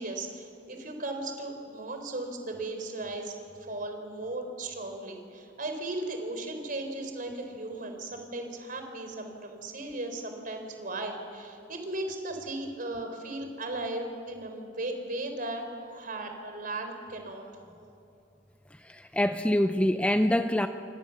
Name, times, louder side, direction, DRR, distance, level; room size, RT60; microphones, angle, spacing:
voice 1, 0.0-17.4, right 2 dB, 50° right, 5 dB, 3.9 m, -36 dB
voice 2, 18.8-20.7, left 1 dB, 5° left, 8 dB, 0.5 m, -25 dB
28.0 x 24.5 x 7.1 m, 2.7 s
head